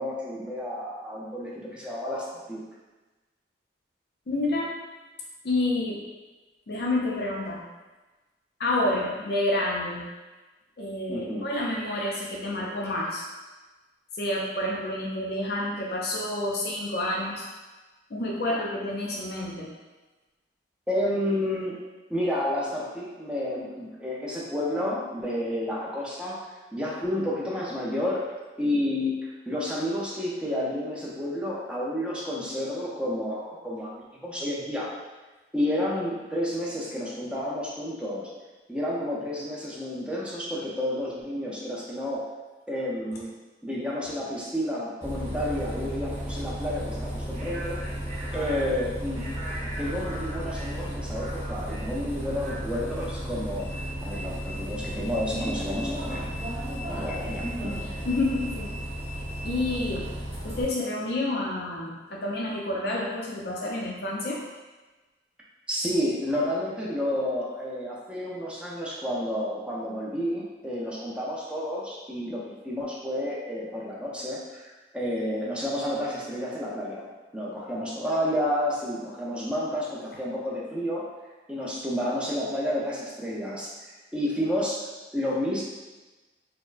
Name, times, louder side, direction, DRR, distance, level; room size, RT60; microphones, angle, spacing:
voice 1, 0.0-2.6 11.1-11.5 18.5-18.6 20.9-21.8 22.1-26.4 26.7-34.9 35.5-38.3 38.7-42.3 42.7-43.3 43.6-47.8 48.3-49.3 49.8-53.7 54.0-56.2 56.8-57.8 65.7-81.1 81.5-83.7 84.1-84.8 85.1-85.6, left 1 dB, 5° right, -5 dB, 0.5 m, -30 dB
voice 2, 4.3-4.7 5.4-6.0 6.7-7.6 8.6-10.0 10.8-13.3 14.2-17.5 18.1-19.7 57.6-57.8 58.0-58.8 59.4-60.1 60.4-64.4, left 1 dB, 60° left, -3 dB, 0.5 m, -29 dB
Bus, 45.0-60.6, equal, 35° right, 0.8 m, -33 dB
4.2 x 2.1 x 2.5 m, 1.2 s
head